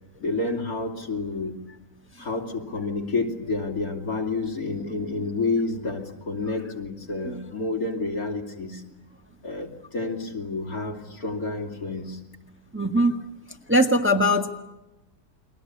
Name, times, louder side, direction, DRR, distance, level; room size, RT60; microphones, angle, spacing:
voice 1, 0.2-1.6 2.2-8.8 9.4-12.2, left 3 dB, 70° left, 2 dB, 3.5 m, -29 dB
voice 2, 12.7-13.2 13.7-14.5, equal, 10° right, 4 dB, 1.4 m, -21 dB
30.0 x 22.5 x 8.4 m, 1.0 s
omnidirectional pair, 1.6 m